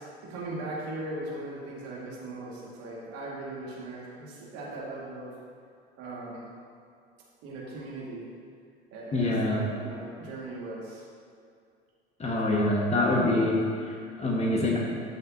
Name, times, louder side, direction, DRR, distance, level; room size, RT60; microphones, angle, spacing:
voice 1, 0.0-5.3 6.0-6.5 7.4-8.2 8.9-11.0, right 2 dB, 50° right, -5 dB, 2.3 m, -39 dB
voice 2, 9.1-9.6 12.2-14.8, left 1 dB, 20° left, -2 dB, 1.8 m, -25 dB
13.5 x 6.4 x 3.0 m, 2.2 s
figure-of-eight pair, 70°, 32 cm